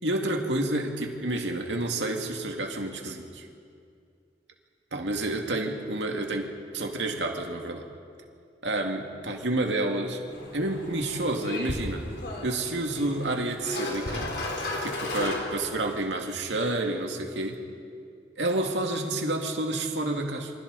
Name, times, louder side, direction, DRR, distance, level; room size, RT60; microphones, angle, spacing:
voice 1, 0.0-3.4 4.9-7.8 8.6-10.2 10.5-12.1 12.4-14.3 14.8-17.6 18.4-20.5, right 2 dB, 85° right, 2 dB, 2.3 m, -29 dB
sound 1, 10.3-16.1, left 2 dB, 85° left, 4.0 m, -35 dB
28.5 x 25.0 x 4.1 m, 2.3 s
head